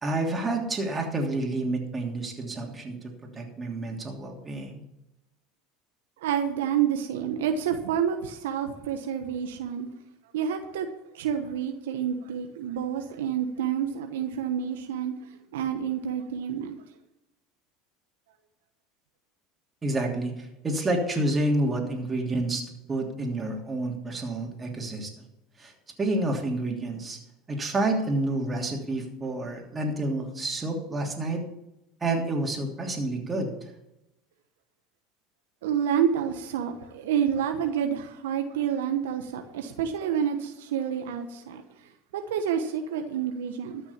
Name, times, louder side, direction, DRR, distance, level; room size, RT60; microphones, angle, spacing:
voice 1, 0.0-3.0 3.2-4.7 19.8-22.6 22.9-25.2 25.6-25.7 26.0-27.2 27.5-31.4 32.0-33.7, right 2 dB, 25° right, 1 dB, 3.1 m, -29 dB
voice 2, 6.2-9.9 10.3-10.9 11.1-15.1 15.5-16.8 35.6-41.6 42.1-43.8, right 8 dB, 80° right, 6 dB, 1.1 m, -28 dB
13.5 x 6.2 x 7.1 m, 0.90 s
hypercardioid pair, 90°, 0 cm